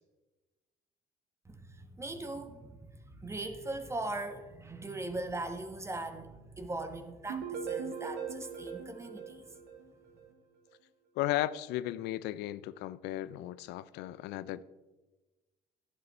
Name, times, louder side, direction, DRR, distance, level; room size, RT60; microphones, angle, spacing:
voice 1, 1.4-9.4, right 2 dB, 15° right, 1.3 m, -40 dB
sound 1, 7.3-10.2, right 6 dB, 80° right, 1.9 m, -40 dB
voice 2, 11.2-14.6, left 14 dB, 85° left, 0.5 m, -35 dB
13.0 x 10.5 x 4.3 m
cardioid pair, 110°, 17 cm